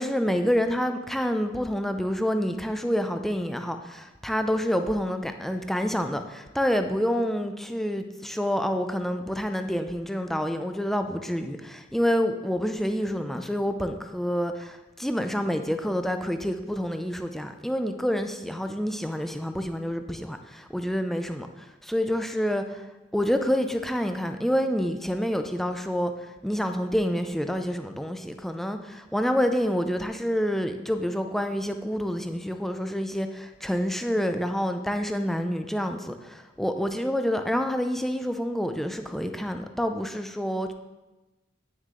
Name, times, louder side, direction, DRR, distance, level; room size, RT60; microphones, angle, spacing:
voice 1, 0.0-40.7, equal, ahead, 7 dB, 0.4 m, -28 dB
9.2 x 6.5 x 3.7 m, 1.1 s
head